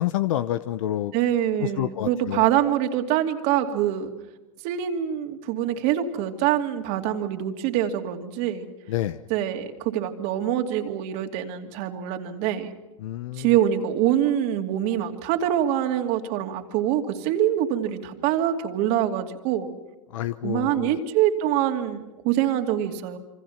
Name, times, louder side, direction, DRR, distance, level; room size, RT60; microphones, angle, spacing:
voice 1, 0.0-1.1 1.6-2.5 8.9-9.2 13.0-13.5 20.1-21.0, left 13 dB, 70° left, 12 dB, 0.9 m, -28 dB
voice 2, 1.1-4.1 4.6-8.6 9.3-12.7 13.4-19.7 20.4-23.2, right 11 dB, 55° right, 5 dB, 2.6 m, -25 dB
27.5 x 25.0 x 5.9 m, 0.99 s
hypercardioid pair, 105°, 18 cm